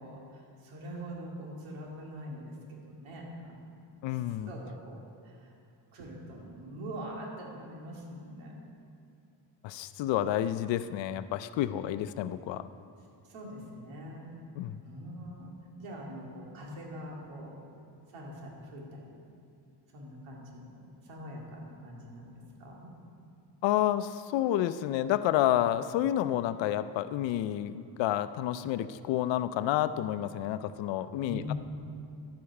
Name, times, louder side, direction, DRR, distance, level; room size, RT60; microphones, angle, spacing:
voice 1, 0.0-3.8 4.1-5.5 5.9-8.5 13.3-14.3 14.8-15.5 15.8-17.6 18.1-19.2 19.9-22.3 22.6-22.9 31.2-31.5, equal, 85° right, -2 dB, 2.5 m, -43 dB
voice 2, 4.0-4.5 9.6-12.7 14.6-14.8 23.6-31.5, left 12 dB, 70° left, 14 dB, 0.5 m, -29 dB
11.0 x 8.6 x 4.8 m, 2.6 s
cardioid pair, 140°, 47 cm